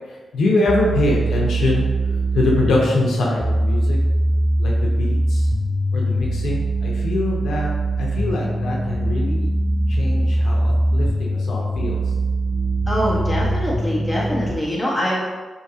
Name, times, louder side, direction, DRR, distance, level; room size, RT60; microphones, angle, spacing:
voice 1, 0.3-1.9 2.3-4.0 4.6-5.5 5.9-7.7 8.0-9.5 9.9-12.0, left 2 dB, 85° left, -2 dB, 0.7 m, -23 dB
sound 1, 0.7-14.5, right 1 dB, 25° left, 0.5 m, -21 dB
voice 2, 12.9-15.2, equal, ahead, -7 dB, 1.3 m, -23 dB
4.9 x 2.8 x 2.8 m, 1.3 s
cardioid pair, 85°, 0 cm